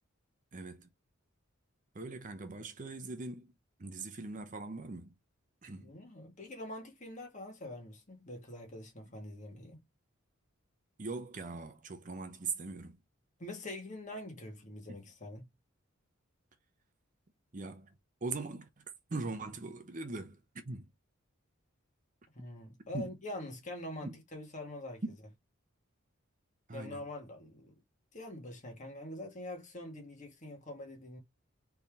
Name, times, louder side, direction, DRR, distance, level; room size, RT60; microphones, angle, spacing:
voice 1, 0.5-0.9 1.9-3.5 3.8-5.1 5.6-5.9 11.0-13.0 17.5-17.9 18.2-18.8 19.1-20.9 22.9-23.2 24.0-24.2 25.0-25.2 26.7-27.0, right 3 dB, 40° right, 0.7 m, -41 dB
voice 2, 5.7-9.8 13.4-15.4 22.3-25.0 26.7-27.8 28.1-31.2, left 1 dB, 35° left, 1.8 m, -44 dB
4.3 x 3.5 x 3.5 m
head